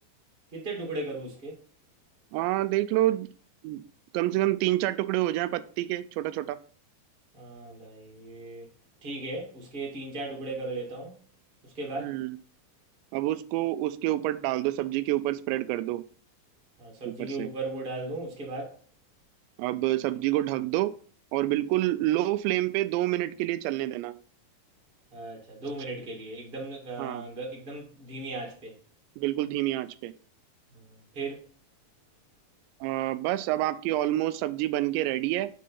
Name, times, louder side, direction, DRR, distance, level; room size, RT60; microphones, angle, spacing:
voice 1, 0.5-1.6 7.3-8.7 9.0-11.1 11.7-12.1 16.8-18.7 25.1-28.7 30.7-30.8 31.1-31.4, right 2 dB, 35° right, 0.8 m, -37 dB
voice 2, 2.3-3.3 3.6-3.8 4.1-6.6 12.0-12.4 13.1-16.0 17.1-17.5 19.6-20.9 21.3-24.1 27.0-27.2 29.2-30.1 32.8-35.5, right 15 dB, 90° right, 2.8 m, -28 dB
7.5 x 3.8 x 5.5 m
omnidirectional pair, 5.0 m